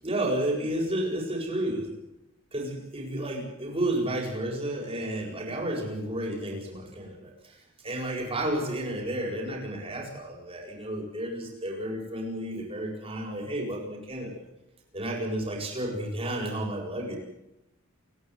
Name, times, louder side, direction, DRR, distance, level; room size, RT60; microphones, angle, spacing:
voice 1, 0.0-1.9 2.5-7.6 7.8-14.5 14.9-17.2, right 1 dB, 25° right, -1 dB, 8.0 m, -31 dB
29.0 x 12.0 x 9.7 m, 0.90 s
head